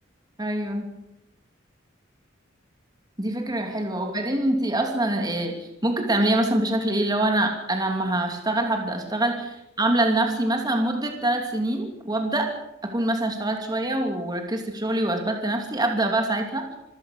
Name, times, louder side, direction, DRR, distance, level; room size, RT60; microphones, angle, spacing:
voice 1, 0.4-0.9 3.2-12.5 12.8-16.8, right 1 dB, 20° right, 3 dB, 2.8 m, -25 dB
26.0 x 16.0 x 6.6 m, 0.88 s
head